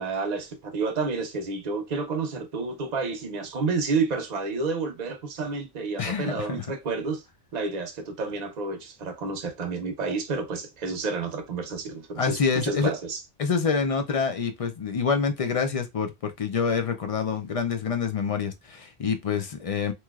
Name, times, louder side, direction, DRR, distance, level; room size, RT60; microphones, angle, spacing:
voice 1, 0.0-7.2 7.5-13.2, right 4 dB, 45° right, 0.7 m, -30 dB
voice 2, 6.0-6.6 12.2-12.9 13.4-19.9, left 5 dB, 50° left, 0.4 m, -26 dB
3.0 x 2.9 x 2.3 m
omnidirectional pair, 1.1 m